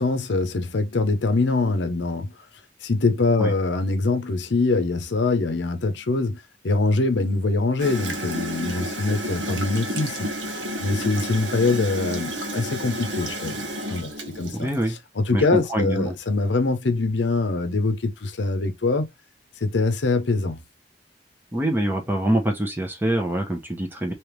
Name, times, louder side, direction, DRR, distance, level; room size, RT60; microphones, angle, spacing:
voice 1, 0.0-2.3 2.8-10.3 10.8-14.7 15.2-19.1 19.6-20.6, left 3 dB, 70° left, 0.7 m, -23 dB
Gurgling / Toilet flush, 7.8-14.9, right 1 dB, 75° right, 1.0 m, -31 dB
voice 2, 14.5-15.0 15.3-16.1 21.5-24.1, right 1 dB, 10° right, 0.7 m, -25 dB
3.3 x 2.9 x 3.0 m
head